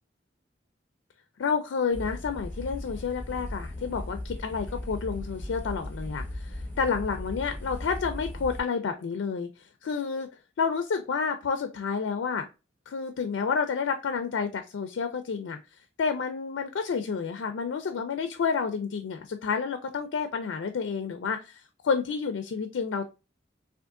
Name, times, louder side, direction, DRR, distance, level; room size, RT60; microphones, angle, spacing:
voice 1, 1.4-9.5 9.8-10.3 10.6-12.5 12.9-15.6 16.0-23.1, left 5 dB, 90° left, 7 dB, 0.4 m, -30 dB
sound 1, 1.9-8.6, left 1 dB, 10° left, 1.2 m, -37 dB
3.5 x 2.5 x 2.4 m, 0.29 s
head